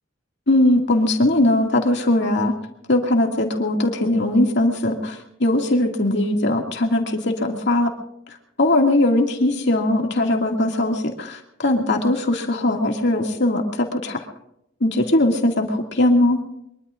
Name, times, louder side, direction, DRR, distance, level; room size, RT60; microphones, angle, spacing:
voice 1, 0.5-2.5 2.9-7.9 8.6-14.2 14.8-16.4, left 1 dB, 60° left, 2 dB, 2.3 m, -20 dB
23.0 x 23.0 x 2.5 m, 0.77 s
head